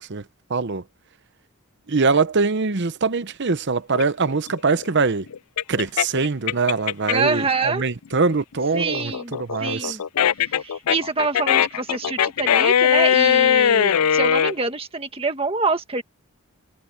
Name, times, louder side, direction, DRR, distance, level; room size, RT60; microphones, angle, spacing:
voice 1, 0.5-0.8 1.9-5.2 5.7-9.1 9.4-10.0, right 4 dB, 55° right, 0.8 m, -23 dB
sound 1, 3.9-7.4 7.8-14.5, left 9 dB, 90° left, 0.5 m, -20 dB
voice 2, 7.1-7.8 8.7-9.3 9.6-10.0 10.3-16.0, right 4 dB, 25° right, 1.8 m, -26 dB
head